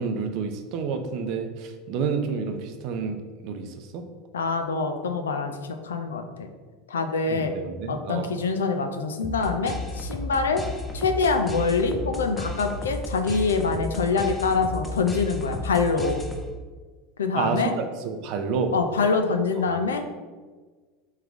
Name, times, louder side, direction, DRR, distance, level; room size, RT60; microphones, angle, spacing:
voice 1, 0.0-4.0 7.3-8.3 17.3-18.7, right 5 dB, 55° right, 6 dB, 0.5 m, -29 dB
voice 2, 4.3-5.6 5.8-6.5 6.9-7.5 7.9-10.6 10.9-16.2 17.2-17.7 18.7-20.0, left 4 dB, 85° left, 6 dB, 0.4 m, -25 dB
sound 1, 9.2-16.7, left 2 dB, 15° left, 0.6 m, -33 dB
3.6 x 3.1 x 3.5 m, 1.4 s
hypercardioid pair, 90°, 0 cm